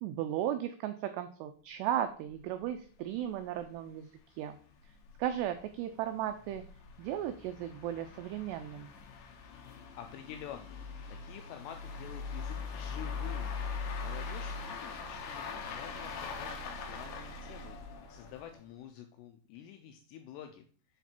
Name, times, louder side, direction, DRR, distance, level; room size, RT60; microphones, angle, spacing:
voice 1, 0.0-4.6 4.9-5.0 5.2-6.6 7.0-8.9, right 11 dB, 90° right, 9 dB, 2.4 m, -35 dB
sound 1, 2.3-2.4 2.6-2.7 3.2-3.3 3.6-3.7 4.3-18.7, left 5 dB, 70° left, 2.7 m, -42 dB
voice 2, 9.7-13.6 14.0-20.7, left 9 dB, 85° left, 6 dB, 2.4 m, -49 dB
8.1 x 4.0 x 4.3 m, 0.44 s
omnidirectional pair, 5.4 m